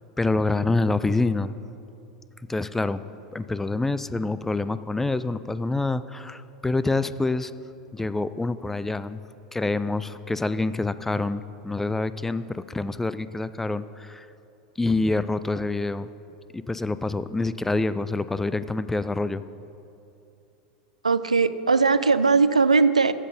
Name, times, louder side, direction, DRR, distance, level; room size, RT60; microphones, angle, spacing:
voice 1, 0.2-1.6 2.5-3.1 3.3-7.5 7.9-9.2 9.5-14.3 14.8-16.1 16.5-19.4, left 3 dB, 10° left, 14 dB, 0.3 m, -26 dB
voice 2, 21.0-23.1, right 4 dB, 90° right, 14 dB, 0.3 m, -19 dB
14.5 x 5.8 x 5.4 m, 2.7 s
figure-of-eight pair, 85°, 4 cm